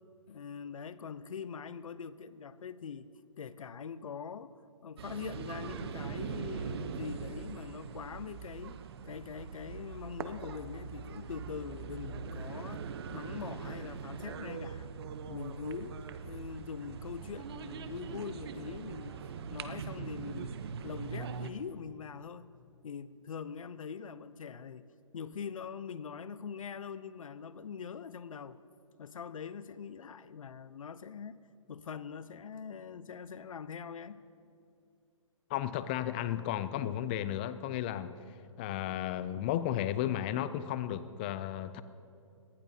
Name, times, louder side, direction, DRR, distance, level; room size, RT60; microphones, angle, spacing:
voice 1, 0.3-3.1 3.4-12.8 13.1-14.9 15.3-19.2 19.5-22.5 22.8-24.9 25.1-28.6 29.0-31.4 31.7-34.2, left 6 dB, 80° left, 0.7 m, -43 dB
sound 1, 5.0-21.5, right 6 dB, 50° right, 0.8 m, -42 dB
voice 2, 35.5-38.1 38.6-41.8, left 11 dB, 20° left, 0.3 m, -34 dB
23.0 x 18.5 x 2.8 m
hypercardioid pair, 155°, 17 cm